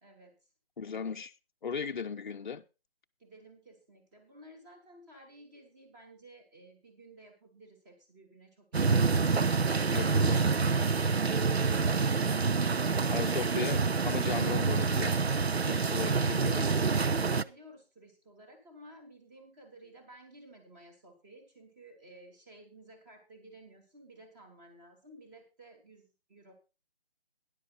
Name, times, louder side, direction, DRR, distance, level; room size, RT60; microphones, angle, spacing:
voice 1, 0.0-0.3 2.4-2.6 3.2-10.2 17.2-26.5, right 1 dB, 20° right, 3.2 m, -55 dB
voice 2, 0.8-1.3 1.6-2.6 9.9-10.4 13.1-15.2 15.7-16.8, left 6 dB, 50° left, 0.7 m, -37 dB
sound 1, 8.7-17.4, right 4 dB, 90° right, 0.7 m, -27 dB
13.0 x 10.5 x 4.2 m
figure-of-eight pair, 155°, 31 cm